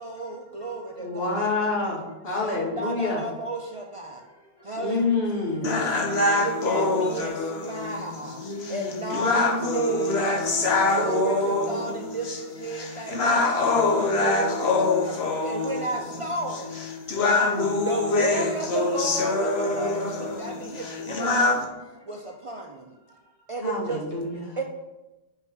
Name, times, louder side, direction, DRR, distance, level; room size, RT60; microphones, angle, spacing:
voice 1, 0.0-1.4 2.3-4.2 4.6-5.7 6.2-8.4 8.7-10.3 10.9-13.5 14.0-15.2 15.4-16.8 17.8-21.6 22.1-23.0 23.5-24.0 24.6-24.7, right 3 dB, 40° right, 2 dB, 0.6 m, -33 dB
voice 2, 1.0-3.2 4.8-5.7 8.4-9.3 23.6-24.6, left 3 dB, 75° left, -4 dB, 2.2 m, -28 dB
voice 3, 4.1-4.9 5.5-6.5 10.6-10.8 12.7-13.0 15.0-15.4 17.0-17.8 21.8-22.1 23.1-23.3, equal, 25° left, 0 dB, 1.4 m, -53 dB
sound 1, 5.6-21.7, left 3 dB, 90° left, 1.3 m, -25 dB
5.7 x 5.3 x 6.0 m, 1.0 s
omnidirectional pair, 1.0 m